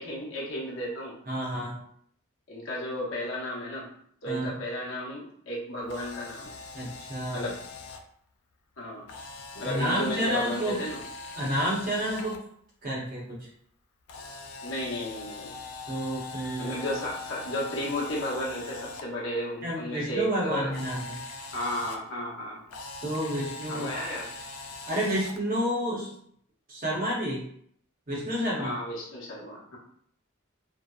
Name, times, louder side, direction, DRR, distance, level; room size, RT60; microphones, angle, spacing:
voice 1, 0.0-1.2 2.5-3.9 4.2-6.6 7.3-7.6 8.8-9.0 9.5-11.0 14.6-15.5 16.6-20.7 21.5-22.6 23.7-24.3 28.5-29.8, equal, 65° left, -4 dB, 0.8 m, -33 dB
voice 2, 1.3-1.8 4.3-4.5 6.7-7.5 9.6-10.8 11.3-12.4 12.8-13.5 15.9-16.8 19.6-21.2 23.0-23.9 24.9-26.1 26.7-27.4 28.1-28.7, equal, 40° right, -4 dB, 0.8 m, -30 dB
Camera, 5.8-8.0 9.1-12.4 14.1-19.0 20.7-22.0 22.7-25.4, left 3 dB, 85° left, 0.3 m, -41 dB
2.6 x 2.0 x 2.3 m, 0.65 s
head